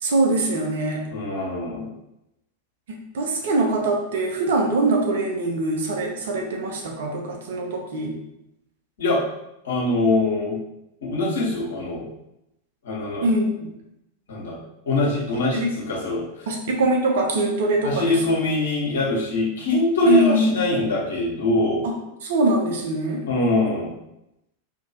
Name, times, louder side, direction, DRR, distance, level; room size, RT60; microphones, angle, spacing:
voice 1, 0.0-1.0 2.9-8.2 13.2-13.6 15.5-15.8 16.5-18.2 20.0-20.5 21.8-22.0 22.2-23.3, right 2 dB, 60° right, 1 dB, 0.8 m, -23 dB
voice 2, 1.1-1.9 9.0-9.2 9.6-10.6 11.0-12.1 12.8-13.3 14.3-14.6 14.8-16.2 17.8-21.8 23.2-23.9, left 2 dB, 60° left, -4 dB, 1.4 m, -23 dB
4.2 x 2.9 x 3.0 m, 0.85 s
figure-of-eight pair, 90°, 0 cm